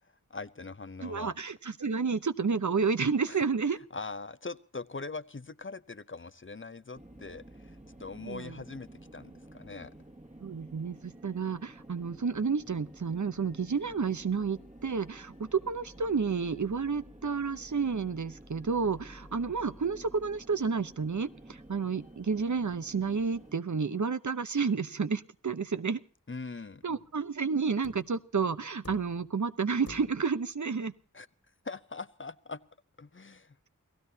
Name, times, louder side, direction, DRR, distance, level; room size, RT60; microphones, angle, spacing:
voice 1, 0.3-1.3 3.3-3.4 3.9-9.9 26.3-26.8 31.1-31.3 31.6-32.6 33.0-33.5, left 3 dB, 40° left, 15 dB, 0.7 m, -42 dB
voice 2, 1.0-3.8 8.2-8.6 10.4-26.0 26.8-30.9, right 5 dB, 60° right, 12 dB, 0.9 m, -31 dB
sound 1, 6.9-23.5, right 1 dB, 25° right, 1.8 m, -51 dB
sound 2, 26.9-27.2 27.8-28.2 28.8-29.4 29.9-30.4 31.7-31.8, left 2 dB, 55° left, 2.2 m, -50 dB
29.0 x 16.5 x 2.8 m, 0.38 s
wide cardioid pair, 40°, 32 cm